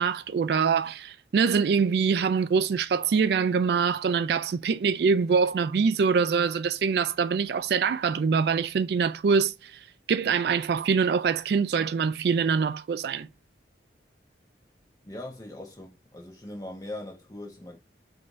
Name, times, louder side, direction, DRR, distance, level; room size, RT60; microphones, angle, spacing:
voice 1, 0.0-9.8 10.1-13.3, right 5 dB, 60° right, 0.3 m, -24 dB
voice 2, 15.0-17.8, left 1 dB, 20° left, 1.1 m, -40 dB
5.4 x 2.7 x 3.1 m
head